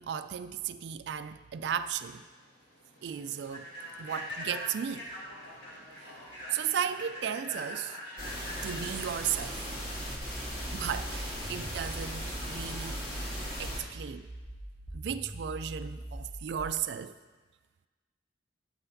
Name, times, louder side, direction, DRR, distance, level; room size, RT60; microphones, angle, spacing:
voice 1, 0.0-2.2 3.0-3.7 4.0-5.1 6.5-8.0 8.6-9.8 10.7-13.0 13.6-14.3 14.9-17.1, right 8 dB, 70° right, 12 dB, 0.3 m, -35 dB
Human voice / Train, 1.8-10.6, equal, 75° left, 1.9 m, -43 dB
sound 1, 8.2-13.8, equal, 55° left, 1.9 m, -38 dB
sound 2, 10.2-13.2 13.6-16.6, right 1 dB, 10° right, 0.7 m, -43 dB
9.5 x 7.8 x 2.7 m, 1.3 s
head